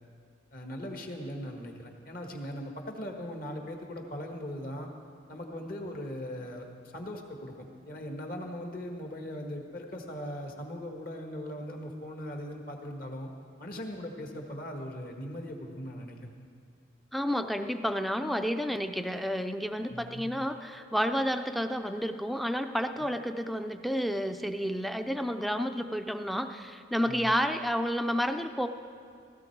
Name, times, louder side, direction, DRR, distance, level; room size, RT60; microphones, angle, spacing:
voice 1, 0.5-4.9 5.3-13.3 13.6-16.3 19.9-20.3 27.0-27.3, equal, 50° left, 2 dB, 1.5 m, -39 dB
voice 2, 17.1-28.7, equal, ahead, 8 dB, 0.4 m, -30 dB
16.5 x 15.0 x 4.6 m, 2.3 s
head